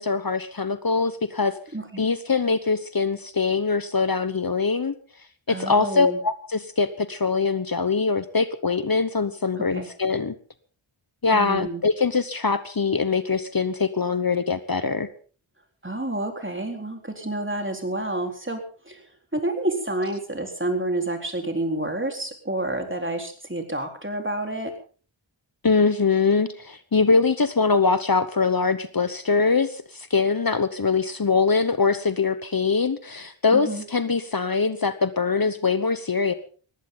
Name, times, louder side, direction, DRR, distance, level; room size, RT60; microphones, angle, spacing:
voice 1, 0.0-1.5 2.0-4.9 5.5-10.3 11.2-15.1 25.6-36.3, left 4 dB, 45° left, 12 dB, 1.1 m, -23 dB
voice 2, 1.7-2.0 5.5-6.2 9.7-9.9 11.3-11.8 15.8-19.0 19.3-24.7 33.5-33.8, right 1 dB, 25° right, 4 dB, 4.0 m, -29 dB
20.5 x 15.5 x 3.9 m, 0.40 s
wide cardioid pair, 50°, 48 cm